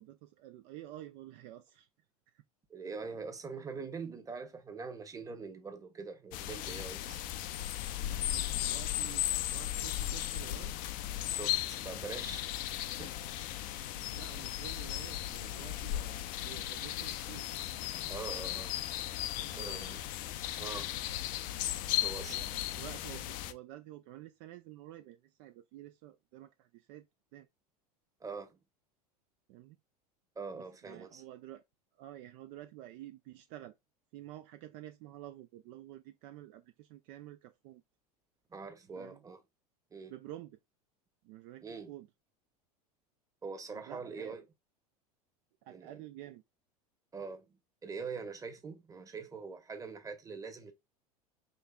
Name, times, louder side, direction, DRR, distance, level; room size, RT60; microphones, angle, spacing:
voice 1, 0.0-1.9 2.3-2.4 8.0-10.7 13.9-17.5 19.4-20.0 21.9-27.1 27.3-27.5 29.5-29.8 30.5-31.6 31.9-33.7 34.1-37.8 39.0-39.2 40.1-40.6 41.2-42.1 43.7-44.4 45.6-46.4, right 14 dB, 50° right, 0.4 m, -50 dB
voice 2, 2.7-7.2 11.3-12.5 13.0-13.2 18.1-18.7 19.5-20.0 20.6-20.9 22.0-22.4 28.2-28.6 30.4-31.2 38.5-39.4 39.9-40.1 41.6-41.9 43.4-44.4 45.7-46.0 47.1-50.7, right 4 dB, 15° right, 1.0 m, -43 dB
sound 1, 6.3-23.5, left 13 dB, 45° left, 0.5 m, -36 dB
5.3 x 3.1 x 2.2 m
hypercardioid pair, 80°, 20 cm